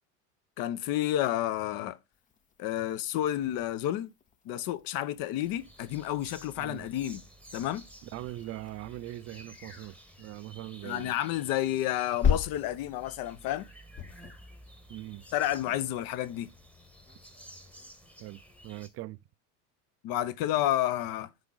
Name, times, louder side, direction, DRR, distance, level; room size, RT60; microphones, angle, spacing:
voice 1, 0.6-2.0 2.6-4.1 4.4-7.2 7.5-7.8 10.8-13.7 15.3-16.5 20.0-21.3, left 13 dB, 50° left, 0.9 m, -30 dB
sound 1, 2.1-19.0, left 7 dB, 20° left, 0.5 m, -39 dB
sound 2, 5.4-18.9, equal, 5° left, 1.1 m, -53 dB
voice 2, 8.0-11.1 14.9-15.2 18.2-19.2, right 16 dB, 35° right, 0.4 m, -41 dB
8.1 x 4.9 x 3.9 m
supercardioid pair, 120°, 43 cm